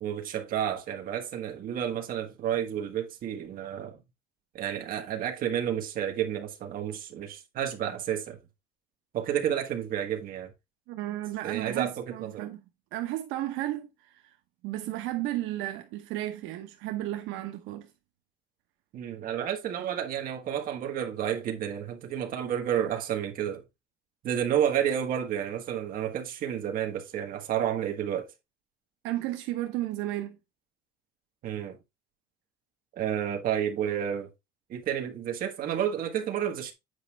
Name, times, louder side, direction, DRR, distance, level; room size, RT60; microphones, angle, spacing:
voice 1, 0.0-4.0 4.5-8.4 9.1-10.5 11.4-12.5 18.9-23.6 24.2-28.3 31.4-31.8 33.0-34.3 34.7-36.7, right 9 dB, 45° right, 1.6 m, -30 dB
voice 2, 10.9-12.6 12.9-14.4 14.6-17.9 29.0-30.4, right 15 dB, 75° right, 1.0 m, -33 dB
8.2 x 5.2 x 3.4 m
cardioid pair, 165°, 20 cm